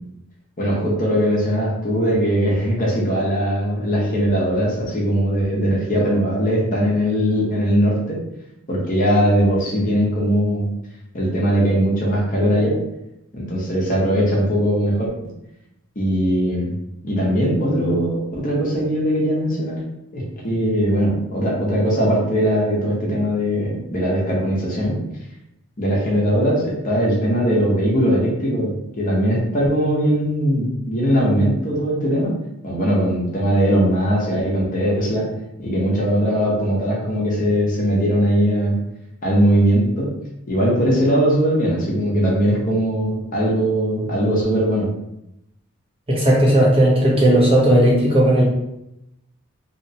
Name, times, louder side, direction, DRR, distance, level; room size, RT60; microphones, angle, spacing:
voice 1, 0.6-8.2 8.7-10.7 11.1-12.7 13.3-15.1 16.0-16.7 17.0-19.8 20.1-25.0 25.8-28.7 29.0-32.3 32.6-35.3 35.6-38.8 39.2-40.1 40.5-44.9, equal, 35° left, -4 dB, 0.7 m, -20 dB
voice 2, 46.1-48.4, right 1 dB, 25° right, -4 dB, 0.6 m, -15 dB
2.8 x 2.1 x 2.7 m, 0.84 s
head